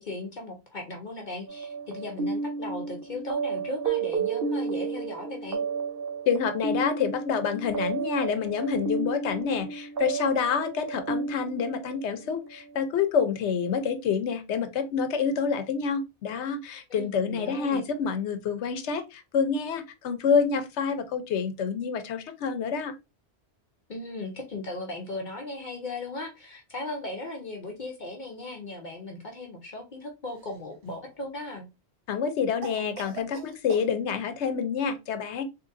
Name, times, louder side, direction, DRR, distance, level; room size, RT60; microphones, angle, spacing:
voice 1, 0.0-5.6 16.9-17.8 23.9-31.7, left 2 dB, 50° left, 2 dB, 0.7 m, -37 dB
sound 1, 1.5-12.8, right 5 dB, 60° right, 0.9 m, -32 dB
voice 2, 6.3-22.9 32.1-35.4, left 6 dB, 85° left, 9 dB, 1.0 m, -27 dB
Cough, 30.3-31.1 32.6-33.9, right 5 dB, 90° right, 1.1 m, -42 dB
3.8 x 2.9 x 2.5 m, 0.25 s
omnidirectional pair, 1.1 m